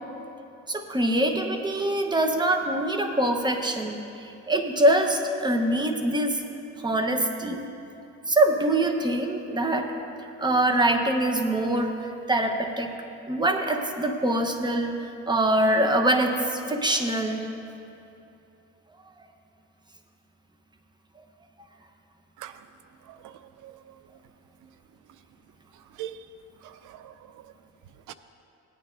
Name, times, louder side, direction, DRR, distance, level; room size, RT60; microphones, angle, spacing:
voice 1, 0.7-6.4 6.8-7.6 8.3-9.9 10.4-12.9 13.3-14.9 15.3-17.4, right 1 dB, 15° right, 4 dB, 1.0 m, -24 dB
voice 2, 23.6-24.0 26.0-26.2 26.6-27.1 28.1-28.2, right 12 dB, 90° right, 12 dB, 0.5 m, -41 dB
17.5 x 9.5 x 2.6 m, 2.8 s
cardioid pair, 90°, 30 cm